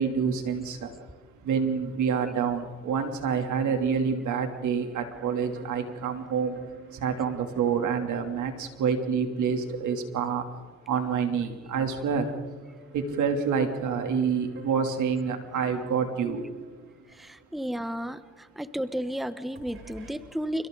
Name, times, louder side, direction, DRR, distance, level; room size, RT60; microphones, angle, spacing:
voice 1, 0.0-6.6 6.9-10.5 10.9-12.6 12.9-16.4, right 6 dB, 75° right, 4 dB, 3.1 m, -28 dB
sound 1, 4.5-10.7 11.1-11.2 12.2-19.2 19.5-20.1, right 4 dB, 45° right, 6.5 m, -52 dB
voice 2, 17.1-20.7, equal, ahead, 12 dB, 1.1 m, -33 dB
29.5 x 29.5 x 4.0 m, 1.5 s
cardioid pair, 90°, 30 cm